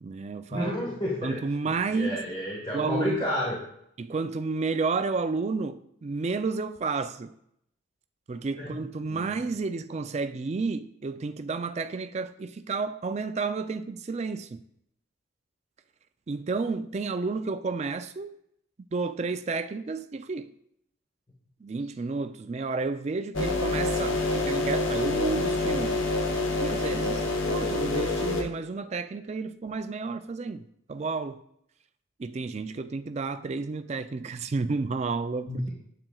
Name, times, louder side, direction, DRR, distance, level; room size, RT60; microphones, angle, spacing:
voice 1, 0.0-0.7 1.2-2.3 2.7-3.3 4.0-7.3 8.3-14.6 16.3-18.3 18.9-20.5 21.6-26.0 26.6-31.4 32.2-35.7, right 4 dB, 35° right, 0.3 m, -31 dB
voice 2, 0.5-1.4 1.9-3.6 8.6-8.7 9.1-9.3 35.5-35.7, left 1 dB, 20° left, 1.3 m, -30 dB
sound 1, 23.3-28.4, left 2 dB, 75° left, 1.1 m, -27 dB
8.8 x 7.7 x 2.3 m
head